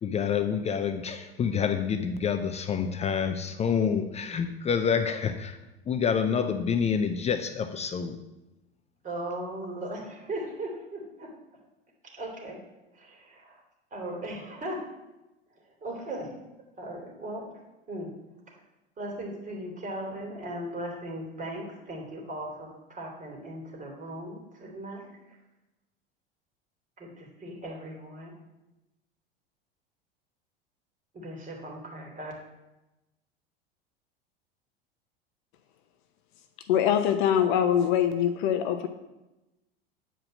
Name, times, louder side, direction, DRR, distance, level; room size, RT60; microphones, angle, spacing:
voice 1, 0.0-5.6 5.9-8.2, left 7 dB, 20° left, 8 dB, 0.6 m, -27 dB
voice 2, 9.0-11.3 12.1-12.6 12.9-13.6 13.9-14.9 15.8-16.3 16.8-17.5 17.9-18.1 19.0-25.4 27.0-28.3 31.1-32.3, right 1 dB, 25° right, 0 dB, 2.8 m, -38 dB
voice 3, 36.7-38.9, left 9 dB, 55° left, 8 dB, 0.8 m, -23 dB
8.9 x 4.9 x 6.4 m, 1.0 s
figure-of-eight pair, 85°, 30 cm